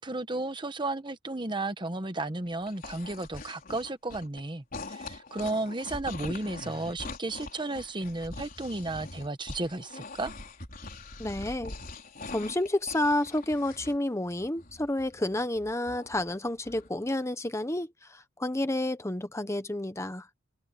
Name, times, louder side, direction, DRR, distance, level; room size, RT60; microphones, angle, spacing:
voice 1, 0.0-10.3, right 2 dB, 25° right, 1.1 m, -33 dB
sound 1, 2.5-4.4 4.7-14.0 14.2-16.3 16.6-16.9, left 2 dB, 50° left, 4.5 m, -43 dB
voice 2, 11.2-11.7 12.3-20.3, left 1 dB, 15° left, 1.0 m, -30 dB
head